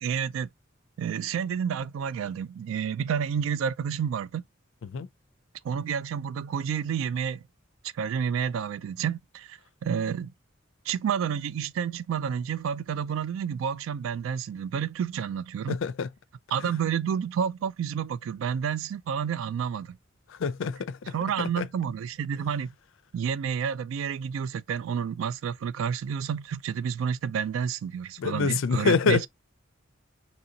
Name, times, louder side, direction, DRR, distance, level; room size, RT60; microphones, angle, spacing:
voice 1, 0.0-0.5 1.0-4.4 5.6-7.4 7.9-10.3 10.9-15.8 16.5-20.0 21.1-22.7 23.1-29.3, right 7 dB, 80° right, 0.3 m, -30 dB
voice 2, 15.7-16.1 20.4-21.7 28.2-29.3, left 5 dB, 75° left, 0.4 m, -26 dB
3.0 x 2.7 x 3.8 m
head